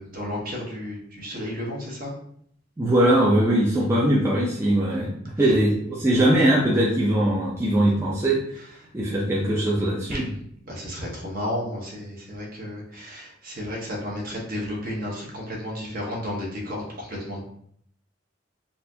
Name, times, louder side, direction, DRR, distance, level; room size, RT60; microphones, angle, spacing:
voice 1, 0.0-2.1 10.1-10.2 10.7-17.4, left 1 dB, 45° right, -3 dB, 1.1 m, -32 dB
voice 2, 2.8-8.4 8.9-10.3, right 1 dB, 15° right, -6 dB, 0.5 m, -21 dB
4.1 x 2.5 x 2.8 m, 0.67 s
head